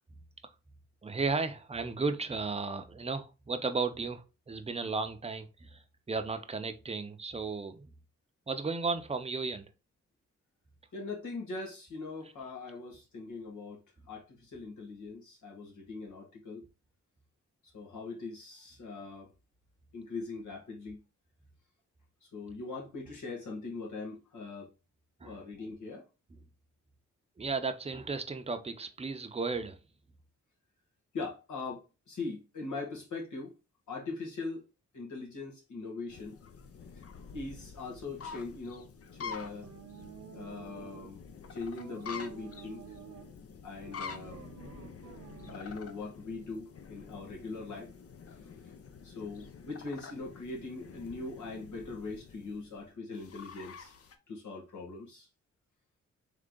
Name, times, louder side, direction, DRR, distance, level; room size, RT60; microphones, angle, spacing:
voice 1, 1.0-5.8 6.1-7.9 8.5-9.7 25.2-25.4 27.4-29.8, right 4 dB, 20° right, 0.6 m, -34 dB
voice 2, 10.9-13.8 14.1-16.6 17.7-19.3 19.9-21.0 22.2-24.7 25.2-26.0 31.1-33.5 33.9-34.6 34.9-36.4 37.3-38.9 39.2-39.7 40.3-41.2 41.5-42.8 43.6-44.4 45.5-47.9 49.0-53.9 54.3-55.3, left 3 dB, 85° left, 1.8 m, -41 dB
sound 1, 36.1-54.2, left 5 dB, 50° left, 0.6 m, -48 dB
sound 2, 39.6-41.2 41.8-43.3 43.8-45.8, right 9 dB, 80° right, 0.7 m, -50 dB
3.7 x 3.3 x 3.8 m
cardioid pair, 80°, 29 cm